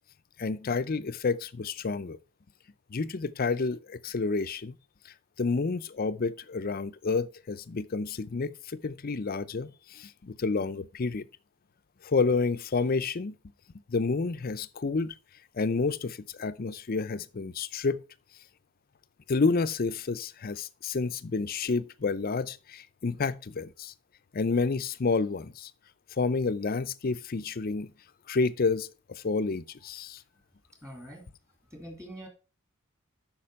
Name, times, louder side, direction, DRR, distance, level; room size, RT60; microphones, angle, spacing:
voice 1, 0.4-2.2 2.9-4.7 5.4-11.3 12.0-13.3 13.9-15.1 15.6-18.0 19.3-23.9 24.3-25.7 26.2-27.9 28.3-30.2, left 4 dB, 45° left, 0.5 m, -29 dB
voice 2, 30.8-31.2 31.7-32.3, equal, 15° right, 2.4 m, -44 dB
8.7 x 5.9 x 4.7 m
head